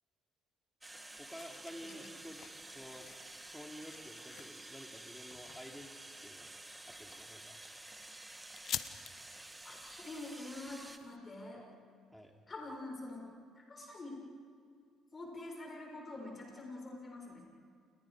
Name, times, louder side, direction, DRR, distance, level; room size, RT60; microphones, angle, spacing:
sound 1, 0.8-11.0, right 2 dB, 15° right, 2.1 m, -51 dB
voice 1, 0.9-3.1 3.4-6.5 6.8-7.6 12.1-12.3, equal, ahead, 2 dB, 3.2 m, -51 dB
sound 2, 1.4-11.2, left 9 dB, 55° left, 1.2 m, -50 dB
voice 2, 9.6-11.7 12.5-13.3 13.6-14.2 15.1-17.4, left 2 dB, 35° left, 0 dB, 6.6 m, -46 dB
30.0 x 29.5 x 5.1 m, 2.3 s
hypercardioid pair, 50°, 0 cm